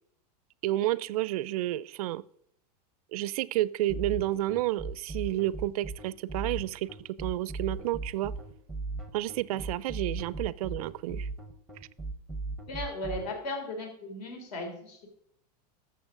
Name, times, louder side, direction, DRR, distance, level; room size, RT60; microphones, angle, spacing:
voice 1, 0.6-2.2 3.1-6.9 7.2-8.3 9.1-11.3, right 15 dB, 60° right, 0.4 m, -30 dB
sound 1, 3.9-13.3, right 3 dB, ahead, 0.7 m, -37 dB
voice 2, 12.7-15.1, left 2 dB, 70° left, 3.4 m, -36 dB
13.5 x 6.9 x 3.7 m
supercardioid pair, 165°, 21 cm